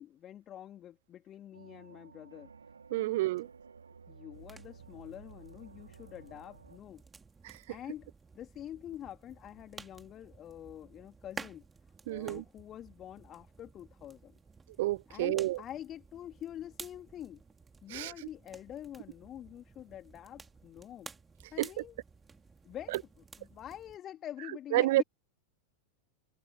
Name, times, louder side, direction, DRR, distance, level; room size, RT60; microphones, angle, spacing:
voice 1, 0.0-2.5 3.0-3.1 4.1-7.0 7.7-11.7 12.1-14.4 15.1-17.4 17.8-21.1 21.5-22.0 22.6-25.0, left 11 dB, 30° left, 3.4 m, -46 dB
sound 1, 1.5-6.8, right 5 dB, 75° right, 3.3 m, -54 dB
voice 2, 2.9-3.5 7.4-7.6 12.1-12.4 14.8-15.6 17.9-18.1 21.6-21.7 24.7-25.0, right 17 dB, 55° right, 0.5 m, -29 dB
sound 2, 4.3-24.0, right 4 dB, 15° right, 3.3 m, -53 dB
figure-of-eight pair, 90°, 0 cm